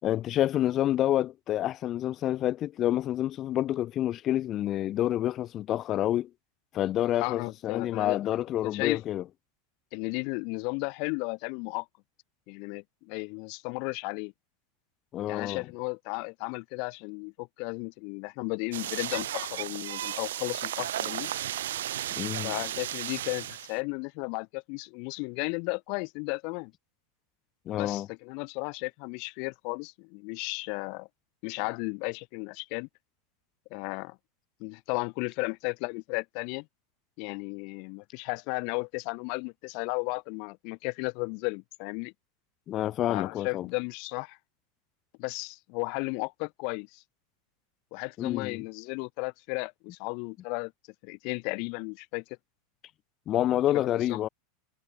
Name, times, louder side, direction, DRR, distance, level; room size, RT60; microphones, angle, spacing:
voice 1, 0.0-6.3 6.7-9.2 15.1-15.6 22.2-22.5 27.7-28.1 42.7-43.7 48.2-48.6 53.3-54.3, left 12 dB, 35° left, 3.6 m, -28 dB
voice 2, 7.2-8.2 8.6-9.0 9.9-11.9 12.5-14.3 15.3-21.3 22.4-26.7 27.7-31.1 31.4-32.9 33.7-34.2 34.6-36.6 37.2-42.1 43.1-44.4 45.2-47.0 47.9-50.7 51.0-52.2 53.7-54.2, left 37 dB, 55° left, 4.8 m, -34 dB
sound 1, 18.7-23.8, right 12 dB, 85° right, 3.7 m, -34 dB
supercardioid pair, 125°, 0 cm